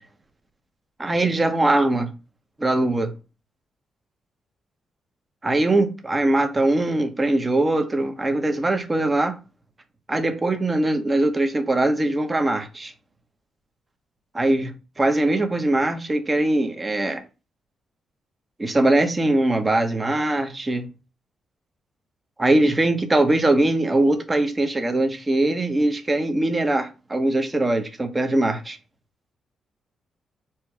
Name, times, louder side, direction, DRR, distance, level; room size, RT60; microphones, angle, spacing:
voice 1, 1.0-2.1 2.6-3.1 5.4-9.4 10.1-12.9 14.4-17.2 18.6-20.9 22.4-28.8, right 2 dB, 20° right, 0.8 m, -21 dB
4.4 x 2.3 x 4.6 m
cardioid pair, 100°, 0 cm